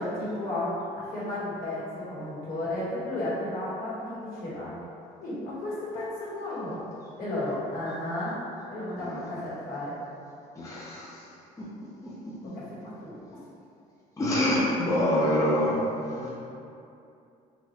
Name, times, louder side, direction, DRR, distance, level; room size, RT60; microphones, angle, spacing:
voice 1, 0.0-4.7 5.2-6.8 7.2-8.3 8.7-10.0 12.4-13.2, left 1 dB, 65° left, -8 dB, 1.5 m, -33 dB
voice 2, 10.6-11.2 11.6-11.7 12.0-12.5 14.2-16.3, left 1 dB, 20° left, -7 dB, 0.7 m, -27 dB
4.0 x 2.9 x 3.0 m, 2.6 s
cardioid pair, 95°, 16 cm